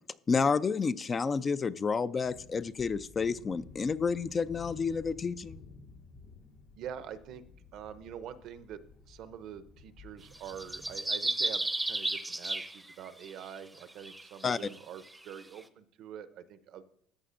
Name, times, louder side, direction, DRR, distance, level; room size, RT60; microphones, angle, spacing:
voice 1, 0.3-5.6 14.4-14.6, left 5 dB, 30° left, 15 dB, 0.3 m, -30 dB
sound 1, 2.2-10.9, left 4 dB, 65° left, 1.4 m, -53 dB
voice 2, 6.7-7.4 7.7-16.8, right 8 dB, 65° right, 12 dB, 0.6 m, -45 dB
sound 2, 10.3-13.3 13.9-15.4, right 2 dB, 10° right, 0.6 m, -34 dB
14.0 x 7.6 x 2.5 m, 0.67 s
supercardioid pair, 105°, 0 cm